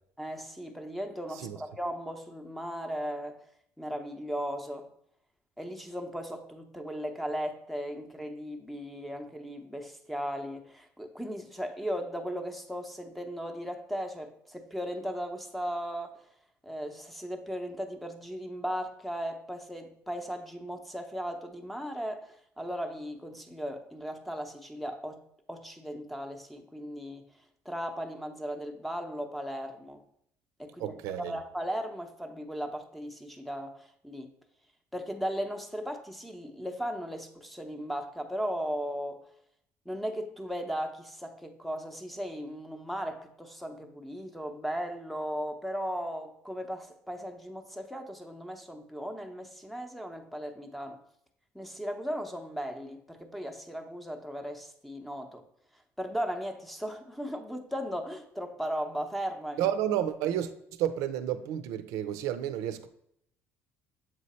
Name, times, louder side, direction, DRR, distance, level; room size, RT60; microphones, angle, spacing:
voice 1, 0.2-3.4 3.8-4.9 5.6-16.3 16.6-25.2 25.5-27.3 27.6-30.0 30.6-34.3 34.9-39.2 39.9-51.0 51.5-55.5 56.0-59.6, equal, ahead, 5 dB, 0.6 m, -37 dB
voice 2, 30.8-31.4 59.6-60.5 60.8-62.9, right 11 dB, 85° right, 11 dB, 0.5 m, -31 dB
7.3 x 3.2 x 4.1 m, 0.73 s
cardioid pair, 130°, 5 cm